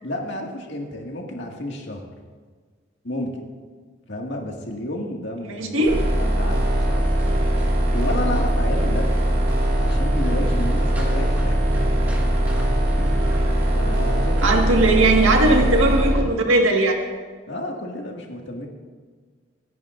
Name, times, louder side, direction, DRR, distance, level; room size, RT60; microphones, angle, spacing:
voice 1, 0.0-2.0 3.0-3.4 4.1-5.8 6.2-7.1 7.9-9.2 9.8-11.8 13.0-13.4 13.7-14.9 17.5-18.7, left 1 dB, 60° left, 0 dB, 2.1 m, -31 dB
voice 2, 5.6-6.0 14.4-17.0, right 2 dB, 90° right, 1 dB, 1.8 m, -18 dB
sound 1, 5.8-16.1, equal, 10° right, 1.8 m, -36 dB
sound 2, 5.9-16.2, right 1 dB, 50° right, 2.1 m, -21 dB
27.0 x 11.0 x 2.6 m, 1.5 s
head